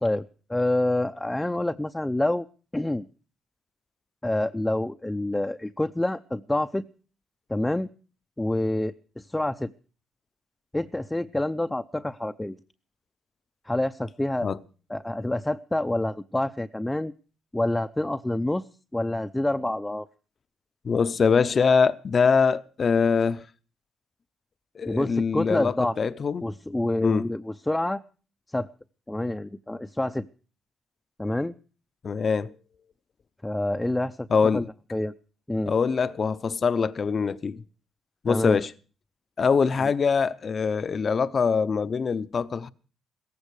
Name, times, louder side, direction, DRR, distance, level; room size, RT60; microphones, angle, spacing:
voice 1, 0.0-2.5 2.7-3.0 4.2-6.8 7.5-7.9 8.4-9.7 10.7-12.6 13.6-14.5 14.9-17.1 17.5-18.6 18.9-20.1 24.9-25.9 26.4-28.0 28.5-28.7 29.1-30.3 31.2-31.5 33.4-34.3 34.5-34.7 34.9-35.1 35.5-35.7 38.3-38.6, left 1 dB, 10° left, 0.7 m, -27 dB
voice 2, 20.8-23.5 24.7-26.5 27.0-27.2 32.0-32.5 34.3-34.7 35.7-37.6 38.2-38.7 39.4-42.7, left 5 dB, 45° left, 0.8 m, -23 dB
17.0 x 15.0 x 4.8 m
cardioid pair, 90°, 0 cm